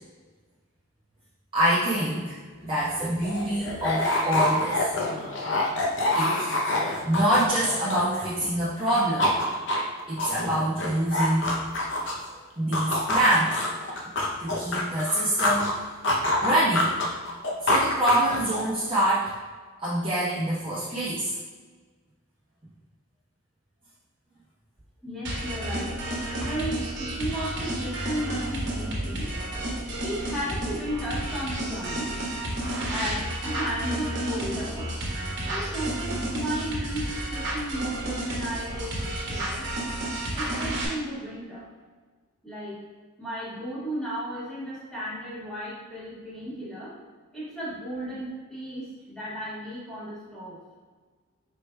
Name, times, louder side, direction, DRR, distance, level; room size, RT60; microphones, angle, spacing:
voice 1, 1.5-2.3 2.6-5.1 6.1-6.5 7.0-9.3 10.1-11.5 12.3-13.6 14.4-15.8 16.4-16.9 17.6-19.3 19.8-21.3, right 1 dB, 25° right, -10 dB, 0.8 m, -25 dB
sound 1, 2.6-2.7 3.0-8.5 8.8-12.3 12.7-15.7 16.0-18.8, left 1 dB, 60° left, 0.6 m, -26 dB
voice 2, 25.0-26.0 26.4-29.3 30.0-32.2 32.9-34.9 35.4-39.7 40.3-41.7 42.4-42.8 43.2-47.0 47.3-50.6, equal, 5° left, -10 dB, 1.5 m, -34 dB
sound 2, 25.2-40.9, right 1 dB, 55° right, 1.1 m, -31 dB
4.9 x 4.5 x 2.2 m, 1.4 s
head